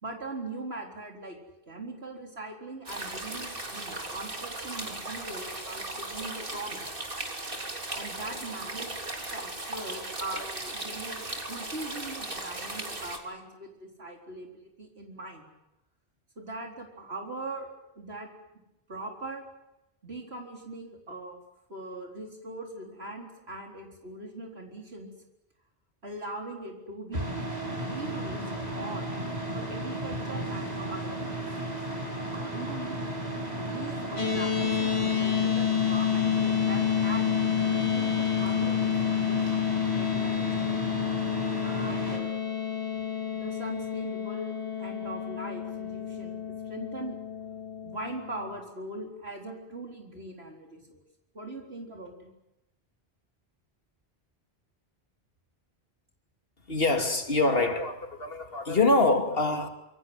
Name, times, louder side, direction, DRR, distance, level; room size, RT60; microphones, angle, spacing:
voice 1, 0.0-1.4 1.7-6.9 8.0-9.1 9.3-15.4 16.4-18.3 18.9-19.4 20.0-21.4 21.7-25.1 26.0-27.5 27.8-29.1 29.5-31.3 32.2-33.2 33.6-37.4 37.7-39.6 40.0-40.6 41.6-42.8 43.3-44.5 44.8-47.2 47.8-51.0 51.3-52.3, right 2 dB, 80° right, 4.3 m, -40 dB
sound 1, 2.9-13.2, right 2 dB, 55° right, 3.5 m, -37 dB
sound 2, 27.1-42.2, right 1 dB, 40° right, 6.4 m, -34 dB
sound 3, 34.2-48.6, left 9 dB, 30° left, 2.8 m, -29 dB
voice 2, 56.7-59.7, left 2 dB, 65° left, 3.0 m, -25 dB
26.5 x 24.5 x 8.0 m
omnidirectional pair, 1.1 m